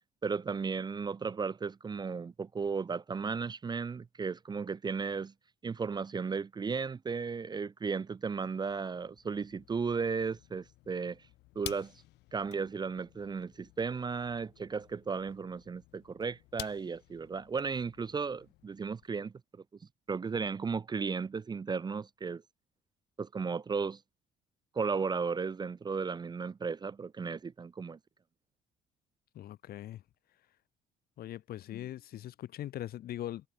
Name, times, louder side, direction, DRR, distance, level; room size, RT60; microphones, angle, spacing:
voice 1, 0.2-5.3 5.6-11.2 11.6-11.9 12.3-19.3 20.1-22.4 23.2-24.0 24.7-28.0, right 5 dB, 25° right, 0.7 m, -35 dB
sound 1, 8.7-19.1, left 20 dB, 90° left, 3.9 m, -52 dB
voice 2, 29.3-30.0 31.2-33.5, left 13 dB, 65° left, 2.3 m, -41 dB
cardioid pair, 110°, 17 cm